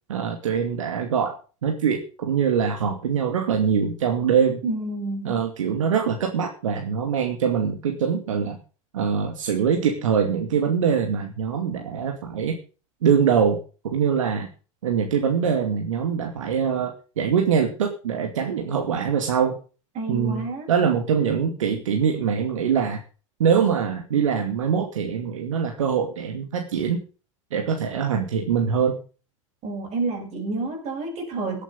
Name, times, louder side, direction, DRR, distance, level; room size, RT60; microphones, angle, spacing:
voice 1, 0.1-4.6 5.2-8.6 8.9-12.5 13.0-13.6 13.8-14.5 14.8-19.6 20.1-23.0 23.4-27.0 27.5-29.0, right 7 dB, 75° right, 3 dB, 2.5 m, -23 dB
voice 2, 4.6-5.3 19.9-20.7 29.6-31.6, right 3 dB, 40° right, 3 dB, 6.5 m, -29 dB
18.0 x 8.4 x 5.4 m, 0.36 s
hypercardioid pair, 95°, 17 cm